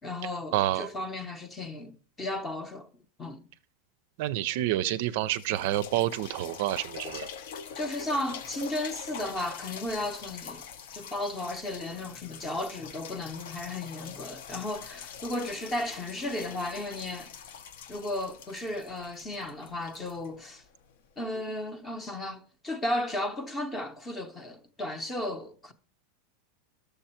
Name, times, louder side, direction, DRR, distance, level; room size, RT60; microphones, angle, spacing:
voice 1, 0.0-2.9 3.2-3.4 7.7-10.7 10.9-17.3 17.9-20.6 21.2-25.7, left 1 dB, 15° left, 0.7 m, -34 dB
voice 2, 0.5-0.9 4.2-7.3, right 14 dB, 55° right, 0.4 m, -28 dB
sound 1, 5.2-21.0 21.6-21.7, left 7 dB, 65° left, 0.8 m, -44 dB
11.5 x 6.8 x 4.3 m
supercardioid pair, 165°, 0 cm